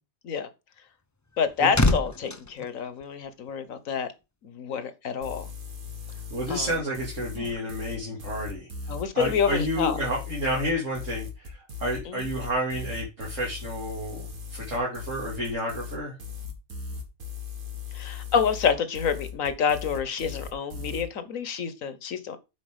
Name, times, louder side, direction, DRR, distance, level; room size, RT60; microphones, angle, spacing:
sound 1, 1.0-3.7 4.0-4.2, left 2 dB, 25° left, 0.4 m, -28 dB
voice 1, 1.4-4.1 4.4-5.5 6.5-6.8 7.3-7.5 8.9-10.0 12.0-12.3 17.9-22.4, left 6 dB, 70° left, 1.5 m, -28 dB
sound 2, 5.2-21.0, left 6 dB, 90° right, 2.6 m, -38 dB
voice 2, 6.3-8.7 9.1-16.1, equal, 60° right, 2.9 m, -30 dB
8.8 x 5.2 x 5.1 m
omnidirectional pair, 1.5 m